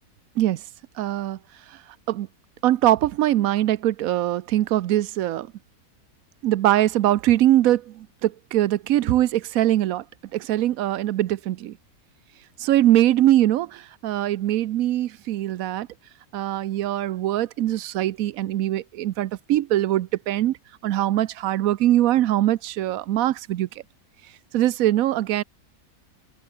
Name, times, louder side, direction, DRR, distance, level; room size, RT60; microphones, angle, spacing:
voice 1, 1.0-1.4 2.1-2.3 2.6-5.5 6.4-10.0 10.3-11.7 12.6-15.9 16.3-20.6 20.8-23.7 24.5-25.4, right 13 dB, 70° right, 1.0 m, -22 dB
omnidirectional pair, 1.7 m